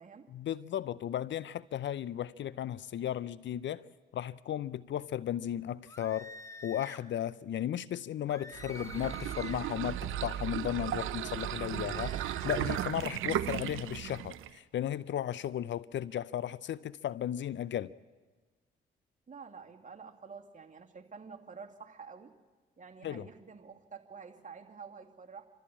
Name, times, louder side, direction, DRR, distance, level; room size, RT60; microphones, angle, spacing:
voice 1, 0.3-3.9 4.1-6.3 6.6-17.9 23.0-23.3, left 11 dB, 60° left, 0.6 m, -35 dB
sound 1, 5.9-7.1 8.3-9.7 11.7-12.9, left 2 dB, 15° left, 1.6 m, -49 dB
sound 2, 8.5-14.6, right 12 dB, 75° right, 0.7 m, -35 dB
voice 2, 19.3-22.3 22.8-25.5, right 5 dB, 40° right, 2.5 m, -49 dB
27.5 x 13.5 x 8.7 m
hypercardioid pair, 45°, 21 cm